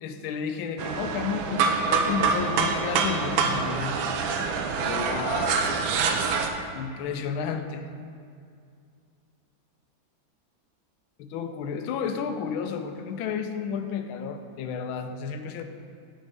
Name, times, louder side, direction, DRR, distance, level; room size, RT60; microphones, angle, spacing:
voice 1, 0.0-4.1 4.8-5.7 6.7-7.9 11.2-15.6, left 6 dB, 90° left, 7 dB, 1.4 m, -32 dB
sound 1, 0.8-6.5, right 5 dB, 90° right, 1.4 m, -26 dB
8.9 x 4.3 x 5.2 m, 2.3 s
omnidirectional pair, 2.2 m